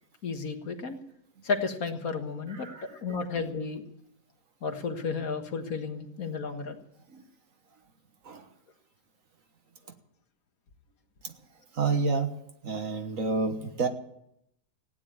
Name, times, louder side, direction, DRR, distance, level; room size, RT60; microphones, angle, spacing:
voice 1, 0.2-1.0 1.4-3.8 4.6-6.8, left 4 dB, 65° left, 5 dB, 1.9 m, -33 dB
voice 2, 11.7-12.4 12.6-13.9, right 4 dB, 60° right, 7 dB, 1.6 m, -29 dB
15.5 x 9.8 x 8.7 m, 0.78 s
omnidirectional pair, 1.7 m